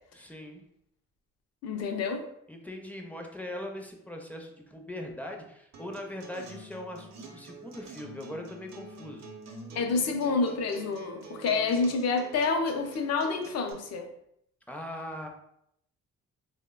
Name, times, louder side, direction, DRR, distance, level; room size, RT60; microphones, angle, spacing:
voice 1, 0.1-0.6 2.5-9.2 14.7-15.3, left 1 dB, 5° left, 1 dB, 0.4 m, -40 dB
voice 2, 1.6-2.3 9.7-14.1, left 4 dB, 55° left, 5 dB, 0.5 m, -28 dB
Acoustic guitar, 5.7-13.7, right 3 dB, 60° right, 0.6 m, -47 dB
3.2 x 2.1 x 2.2 m, 0.74 s
cardioid pair, 90°, 30 cm